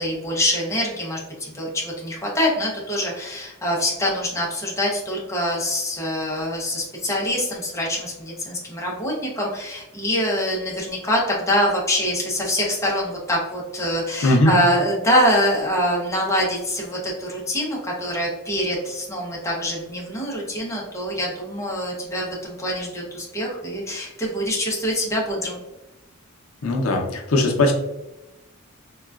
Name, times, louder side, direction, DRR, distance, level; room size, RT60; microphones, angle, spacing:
voice 1, 0.0-25.6, equal, 15° left, -3 dB, 0.7 m, -24 dB
voice 2, 14.2-14.6 26.6-27.7, left 1 dB, 90° left, 2 dB, 0.6 m, -19 dB
3.7 x 2.3 x 2.3 m, 0.97 s
head